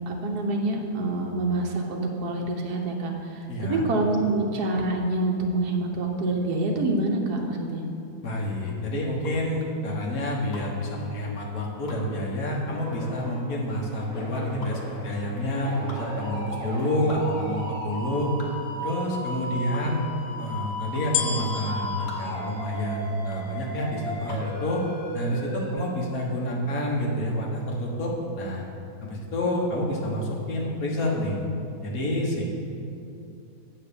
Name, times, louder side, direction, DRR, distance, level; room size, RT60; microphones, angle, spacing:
voice 1, 0.1-7.9, right 2 dB, 70° right, 1 dB, 1.5 m, -26 dB
voice 2, 3.5-3.8 8.2-18.3 18.8-20.0 20.4-24.8 25.1-28.6 29.0-31.4 31.8-32.4, left 1 dB, 60° left, -2 dB, 1.6 m, -28 dB
sound 1, 7.3-24.6, left 2 dB, 45° left, 1.2 m, -47 dB
sound 2, 12.7-13.4 13.8-25.7, equal, 25° left, 1.4 m, -36 dB
sound 3, 21.1-23.5 24.2-24.3, left 7 dB, 90° left, 1.3 m, -32 dB
8.1 x 4.5 x 6.8 m, 2.6 s
omnidirectional pair, 1.8 m